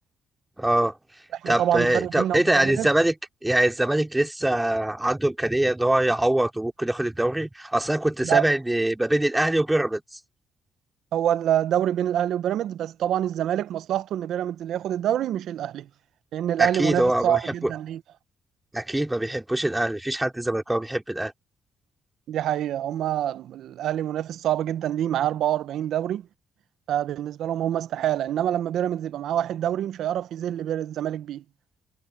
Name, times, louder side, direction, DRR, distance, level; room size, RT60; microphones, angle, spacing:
voice 1, 0.6-0.9 1.5-3.1 3.4-10.0 16.6-17.5 18.7-21.3, right 1 dB, 10° right, 3.4 m, -23 dB
voice 2, 1.3-2.9 8.2-8.4 11.1-15.9 16.3-18.0 22.3-26.2 26.9-31.4, right 11 dB, 75° right, 0.5 m, -26 dB
cardioid pair, 90°, 0 cm